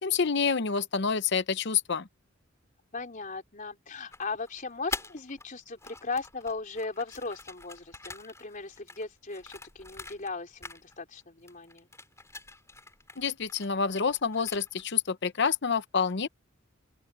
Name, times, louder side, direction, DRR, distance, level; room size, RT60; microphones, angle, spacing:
voice 1, 0.0-2.1 13.2-16.3, left 6 dB, 60° left, 0.8 m, -28 dB
voice 2, 2.9-11.9, left 3 dB, 40° left, 4.0 m, -37 dB
sound 1, 4.1-5.5 5.7-10.4 10.6-11.2 11.5-14.9, left 3 dB, 15° left, 4.1 m, -44 dB
open air
head